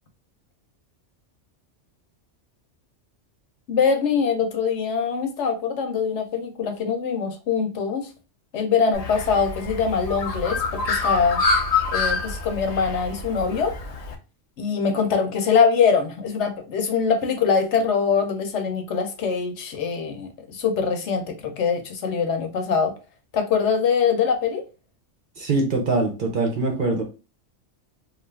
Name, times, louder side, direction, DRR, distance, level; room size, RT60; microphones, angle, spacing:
voice 1, 3.7-8.1 8.5-11.4 11.9-13.7 14.6-22.9 23.3-24.6, left 6 dB, 70° left, 0.9 m, -23 dB
Bird, 8.9-14.1, left 3 dB, 55° left, 0.4 m, -26 dB
voice 2, 25.4-27.0, right 2 dB, 50° right, 0.7 m, -23 dB
2.6 x 2.4 x 3.2 m
omnidirectional pair, 1.3 m